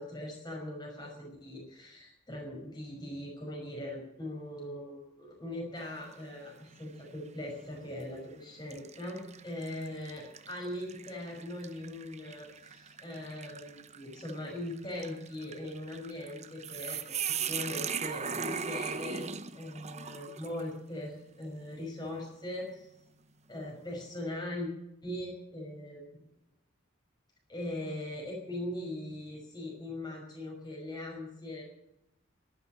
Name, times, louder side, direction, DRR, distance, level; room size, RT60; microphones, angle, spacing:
voice 1, 0.0-12.5 12.8-22.9 23.5-24.7 25.0-26.1 27.5-31.6, left 1 dB, 20° left, -1 dB, 5.6 m, -40 dB
sound 1, 5.8-6.2 6.8-6.9 7.8-8.1 8.7-20.7, right 7 dB, 35° right, 0.9 m, -39 dB
12.5 x 12.0 x 8.6 m, 0.82 s
head